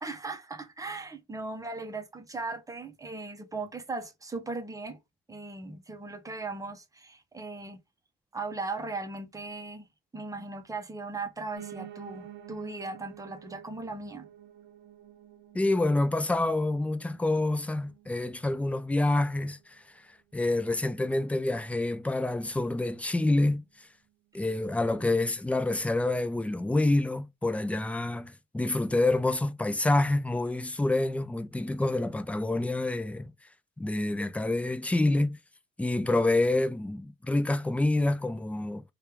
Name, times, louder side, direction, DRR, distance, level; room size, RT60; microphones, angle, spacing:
voice 1, 0.0-5.0 5.3-7.8 8.3-9.9 10.1-14.3, right 3 dB, 15° right, 0.8 m, -38 dB
Piano, 11.5-20.6 21.0-22.2 22.5-22.6 22.8-22.9 23.2-23.3 23.8-23.9, right 11 dB, 65° right, 0.7 m, -50 dB
voice 2, 15.5-19.8 20.3-23.9 24.3-33.3 33.8-35.4 35.8-38.8, left 2 dB, 5° left, 0.4 m, -27 dB
3.2 x 2.3 x 2.9 m
cardioid pair, 90°, 20 cm